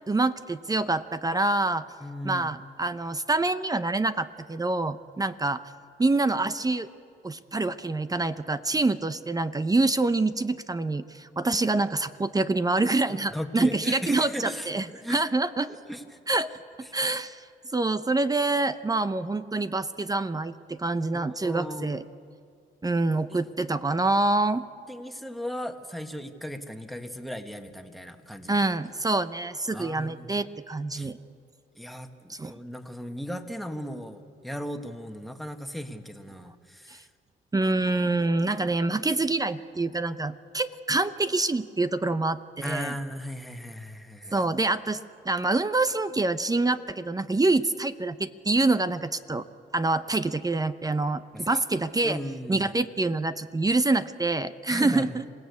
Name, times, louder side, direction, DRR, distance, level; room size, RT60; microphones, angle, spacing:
voice 1, 0.1-1.8 2.2-5.6 6.0-6.9 7.2-15.7 16.3-16.5 16.9-17.4 17.7-22.0 22.8-24.6 28.5-31.2 32.3-32.5 37.5-42.4 42.6-42.9 44.3-45.0 45.2-49.5 49.7-52.2 52.5-55.2, right 2 dB, 20° right, 12 dB, 0.7 m, -26 dB
voice 2, 2.0-2.5 13.3-15.2 15.9-16.2 16.8-16.9 21.1-21.9 23.3-23.4 24.9-28.6 29.7-30.4 30.9-31.1 31.7-37.1 42.6-44.4 51.3-51.6 52.0-52.7 54.7-55.1, equal, ahead, 5 dB, 1.7 m, -37 dB
27.0 x 17.5 x 8.3 m, 2.3 s
cardioid pair, 90°, 20 cm